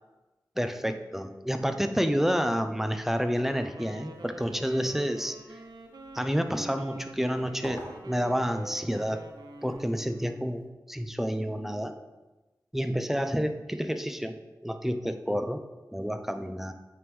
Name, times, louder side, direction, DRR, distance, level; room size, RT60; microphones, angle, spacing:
voice 1, 0.6-5.4 6.1-9.2 9.6-11.9 12.7-14.4 14.6-15.6 15.9-16.7, equal, 5° right, 7 dB, 0.5 m, -29 dB
Wind instrument woodwind instrument, 3.3-10.5, right 1 dB, 75° right, 0.6 m, -45 dB
sound 1, 4.1-10.6, equal, 25° left, 1.4 m, -49 dB
8.8 x 3.6 x 3.1 m, 1.1 s
cardioid pair, 45°, 7 cm